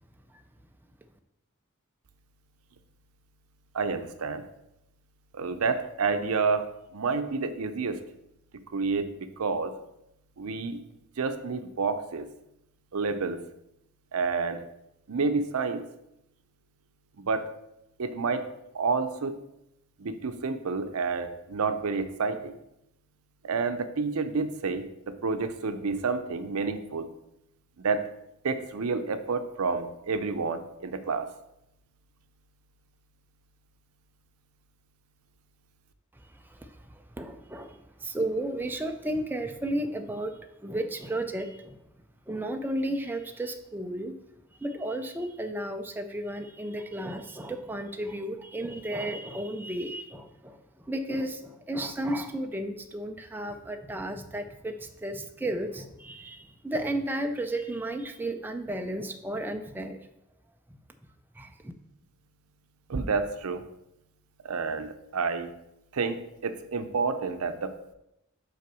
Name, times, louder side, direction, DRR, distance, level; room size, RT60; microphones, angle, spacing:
voice 1, 3.7-4.4 5.3-8.0 8.7-9.7 10.4-10.8 11.2-12.3 12.9-13.4 14.1-14.6 15.1-15.8 17.2-17.5 18.0-18.5 18.7-19.4 20.0-22.6 23.4-27.1 27.8-28.1 28.4-31.3 62.9-63.6 64.4-65.5 65.9-67.9, right 4 dB, 75° right, 9 dB, 0.6 m, -29 dB
voice 2, 37.2-41.8 42.3-44.1 44.6-50.6 50.8-60.0 61.4-61.7, right 1 dB, 10° right, 5 dB, 0.4 m, -33 dB
5.7 x 4.2 x 6.1 m, 0.84 s
head